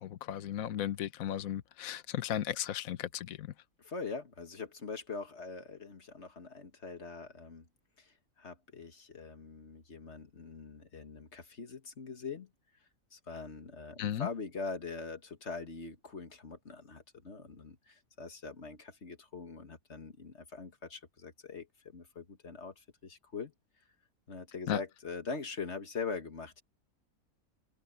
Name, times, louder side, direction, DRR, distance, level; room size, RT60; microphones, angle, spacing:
voice 1, 0.0-3.5 14.0-14.3 24.7-24.8, left 11 dB, 70° left, 1.3 m, -35 dB
voice 2, 3.8-7.7 8.0-12.5 13.1-23.5 24.3-26.6, left 4 dB, 50° left, 2.0 m, -43 dB
omnidirectional pair, 1.5 m